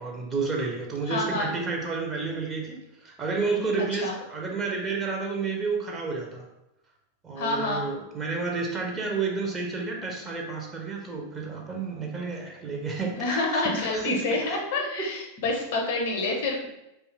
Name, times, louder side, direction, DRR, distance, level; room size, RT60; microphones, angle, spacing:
voice 1, 0.0-6.4 7.2-14.6, right 4 dB, 20° right, -1 dB, 0.6 m, -31 dB
voice 2, 1.1-1.5 4.0-4.1 7.4-7.8 13.1-16.7, left 2 dB, 55° left, 1 dB, 0.5 m, -28 dB
2.6 x 2.4 x 2.8 m, 0.90 s
figure-of-eight pair, 90°, 0 cm